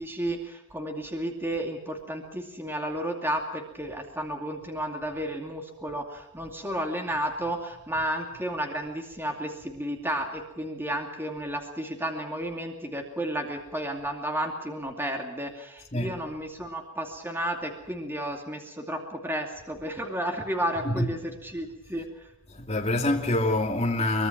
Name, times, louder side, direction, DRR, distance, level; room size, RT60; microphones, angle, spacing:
voice 1, 0.0-22.3, right 1 dB, 10° right, 2.6 m, -32 dB
voice 2, 20.8-21.1 22.5-24.3, left 1 dB, 30° left, 2.7 m, -26 dB
24.0 x 22.5 x 6.0 m
head